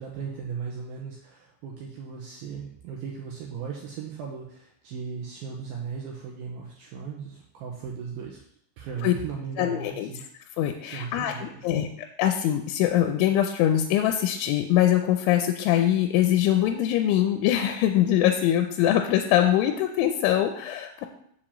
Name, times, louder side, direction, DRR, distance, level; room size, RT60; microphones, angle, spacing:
voice 1, 0.0-8.4 8.8-10.2 10.8-11.9, right 6 dB, 80° right, 0 dB, 2.1 m, -37 dB
voice 2, 9.6-10.1 10.6-11.9 12.2-21.1, left 11 dB, 80° left, 6 dB, 2.9 m, -23 dB
7.1 x 5.0 x 7.2 m, 0.68 s
omnidirectional pair, 5.5 m